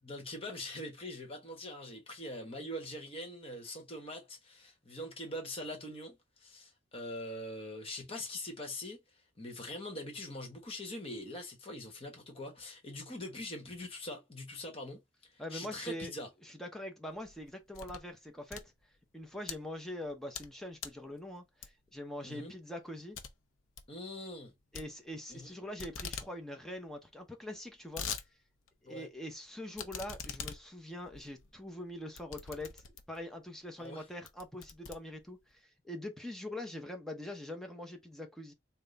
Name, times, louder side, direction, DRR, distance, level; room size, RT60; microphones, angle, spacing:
voice 1, 0.0-9.0 9.4-16.3 22.2-22.6 23.9-24.5 25.3-25.5 28.8-29.1 33.8-34.0, left 1 dB, 30° left, 1.2 m, -43 dB
voice 2, 15.4-16.1 16.4-18.7 19.1-23.2 24.7-28.1 28.8-38.5, left 1 dB, ahead, 0.7 m, -43 dB
sound 1, 17.1-18.1 18.4-19.6 20.1-20.5 20.8-21.1 21.6-22.0 22.4-22.5 22.8-22.9 23.1-23.3 23.6-23.9 24.7-25.5 25.8-26.3 26.6-26.7 26.9-27.0 27.5-28.3 28.7-28.8 29.7-33.3 33.8-33.9 34.3-35.5, left 6 dB, 85° left, 0.7 m, -43 dB
3.6 x 2.2 x 3.9 m
head